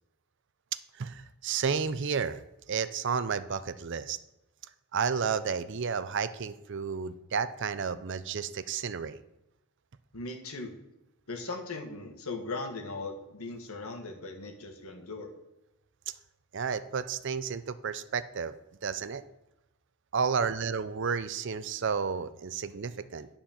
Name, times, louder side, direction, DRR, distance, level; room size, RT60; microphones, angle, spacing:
voice 1, 1.0-2.4 2.7-4.2 4.9-9.2 16.5-18.5 18.8-19.2 20.1-23.3, right 6 dB, 55° right, 13 dB, 0.5 m, -31 dB
voice 2, 10.1-10.7 11.3-15.3, left 3 dB, 75° left, 3 dB, 1.6 m, -38 dB
10.5 x 4.4 x 7.2 m, 0.92 s
head